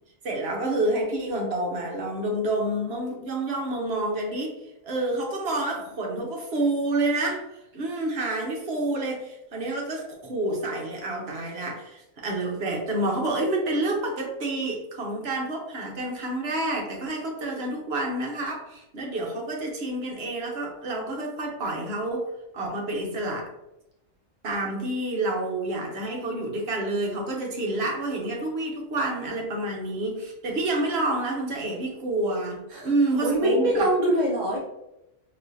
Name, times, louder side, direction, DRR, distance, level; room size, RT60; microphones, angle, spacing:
voice 1, 0.2-4.5 4.8-7.5 7.7-22.2 22.5-23.5 24.4-33.9, right 2 dB, 60° right, 0 dB, 1.0 m, -28 dB
voice 2, 33.2-34.6, right 1 dB, 80° right, -3 dB, 1.2 m, -23 dB
4.1 x 2.5 x 2.6 m, 0.89 s
omnidirectional pair, 1.3 m